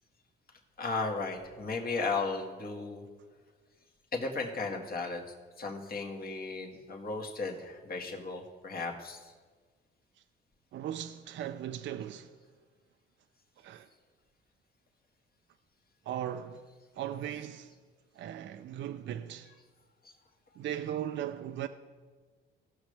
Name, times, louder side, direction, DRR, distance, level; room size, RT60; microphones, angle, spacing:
voice 1, 0.8-3.0 4.1-5.2 5.6-9.3, left 3 dB, 50° left, 1.8 m, -35 dB
voice 2, 10.7-12.3 13.6-13.9 16.1-16.6 17.0-17.7 18.2-19.5 20.6-21.7, right 11 dB, 65° right, 0.5 m, -38 dB
16.5 x 6.6 x 3.3 m
cardioid pair, 90°, 20 cm